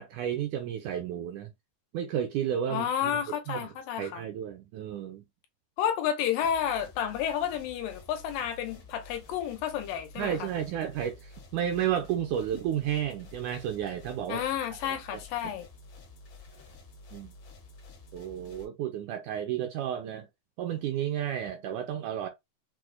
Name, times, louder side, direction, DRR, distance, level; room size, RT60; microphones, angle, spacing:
voice 1, 0.0-1.5 1.9-3.6 4.0-5.2 10.2-14.4 14.8-15.2 17.1-17.3 18.1-20.3 20.6-22.3, right 10 dB, 80° right, 1.8 m, -32 dB
voice 2, 2.7-4.2 5.8-10.5 14.3-15.7, left 9 dB, 85° left, 2.4 m, -31 dB
sound 1, 6.4-18.7, left 3 dB, 65° left, 1.1 m, -51 dB
6.0 x 2.0 x 2.4 m
omnidirectional pair, 3.9 m